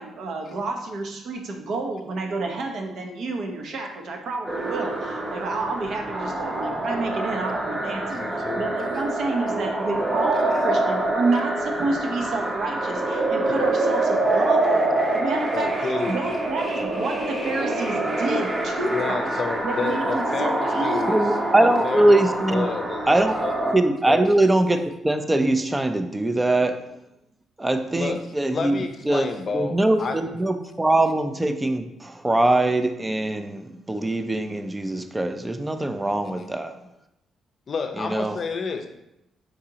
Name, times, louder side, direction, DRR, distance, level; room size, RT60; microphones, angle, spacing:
voice 1, 0.0-19.3 19.6-21.3, right 3 dB, 65° right, 3 dB, 0.7 m, -29 dB
sound 1, 4.5-23.8, right 2 dB, 30° right, 0.8 m, -26 dB
voice 2, 8.1-8.7 15.5-16.2 18.9-21.2 21.6-22.2 22.5-23.5 24.1-24.3 27.9-28.2 28.5-30.2 37.7-38.9, left 4 dB, 45° left, 6 dB, 0.5 m, -30 dB
voice 3, 21.1-22.7 23.1-23.3 23.7-26.8 27.6-28.8 29.1-29.3 29.5-36.7 38.0-38.4, right 1 dB, 15° right, 8 dB, 0.4 m, -22 dB
4.9 x 3.7 x 2.8 m, 0.88 s
cardioid pair, 90°, 0 cm